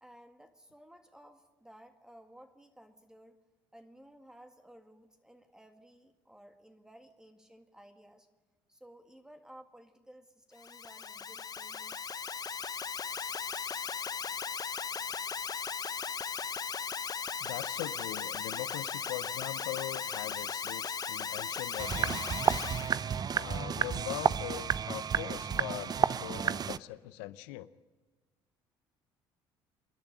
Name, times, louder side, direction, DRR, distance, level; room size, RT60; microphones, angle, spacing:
voice 1, 0.0-3.4 3.7-8.3 8.7-12.2, right 1 dB, 5° right, 5 dB, 2.0 m, -56 dB
Alarm, 10.6-22.9, left 6 dB, 35° left, 0.8 m, -37 dB
voice 2, 17.4-22.3 23.3-27.7, left 16 dB, 85° left, 15 dB, 0.7 m, -41 dB
sound 1, 21.8-26.8, right 7 dB, 40° right, 0.5 m, -31 dB
27.5 x 10.5 x 9.0 m, 1.3 s
supercardioid pair, 75°, 11 cm